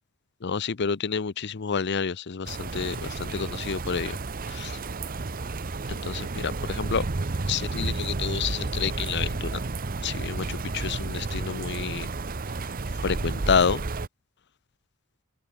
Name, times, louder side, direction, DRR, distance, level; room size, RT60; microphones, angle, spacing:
voice 1, 0.4-4.2 4.5-4.8 5.9-7.1 7.5-9.6 10.0-12.1 13.0-13.8, left 6 dB, 55° left, 0.7 m, -29 dB
sound 1, 2.5-14.1, right 3 dB, 45° right, 0.8 m, -31 dB
open air
head